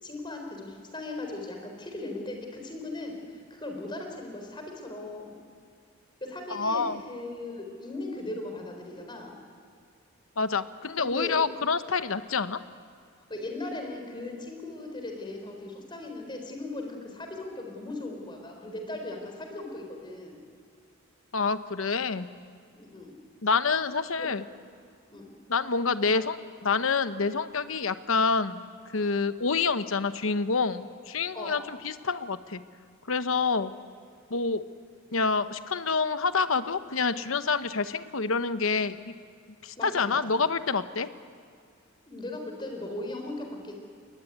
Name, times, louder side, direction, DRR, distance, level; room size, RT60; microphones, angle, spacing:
voice 1, 0.0-5.4 6.2-9.4 11.0-11.4 13.3-20.4 22.7-23.1 24.2-24.3 25.1-25.3 31.3-31.6 39.8-40.4 42.1-43.7, left 2 dB, 25° left, 3 dB, 4.3 m, -38 dB
voice 2, 6.5-7.0 10.4-12.6 21.3-22.3 23.4-24.4 25.5-28.6 28.9-32.6 33.1-33.7 34.3-34.6 35.1-39.1 39.6-41.1, left 4 dB, 75° left, 12 dB, 1.0 m, -27 dB
22.0 x 20.0 x 9.4 m, 2.4 s
head